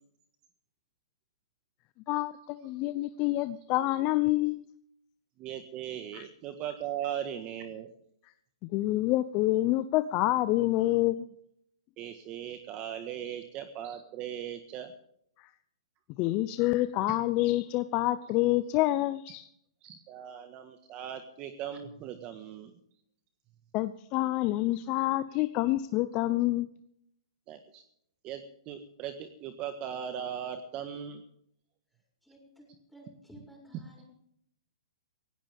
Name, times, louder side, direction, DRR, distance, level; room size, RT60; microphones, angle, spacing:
voice 1, 2.1-4.6 6.1-6.2 8.7-11.3 16.2-19.4 23.7-26.7, left 16 dB, 35° left, 12 dB, 0.7 m, -27 dB
voice 2, 5.4-7.9 12.0-14.9 17.1-17.2 19.8-22.7 27.5-27.8 28.2-31.2, right 9 dB, 30° right, 8 dB, 1.6 m, -38 dB
voice 3, 32.2-34.0, equal, ahead, -2 dB, 7.0 m, -53 dB
19.0 x 16.5 x 3.6 m, 0.70 s
hypercardioid pair, 140°, 3 cm